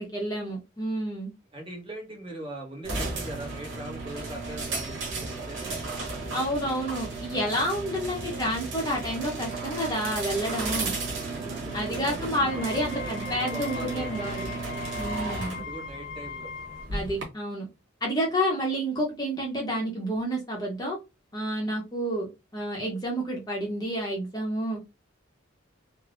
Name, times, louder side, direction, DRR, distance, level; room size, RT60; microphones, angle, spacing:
voice 1, 0.0-1.3 6.3-11.0 11.7-14.5 15.0-15.6 16.9-17.7 18.0-21.0 21.3-24.8, equal, 20° left, -1 dB, 0.7 m, -29 dB
voice 2, 1.5-6.0 10.8-11.1 11.4-14.4 15.5-16.5, right 2 dB, 25° right, -1 dB, 0.8 m, -41 dB
sound 1, 2.8-17.2, right 3 dB, 70° right, 1.2 m, -34 dB
Wind instrument woodwind instrument, 12.4-16.9, left 6 dB, 80° left, 0.6 m, -40 dB
3.4 x 2.0 x 2.4 m, 0.25 s
head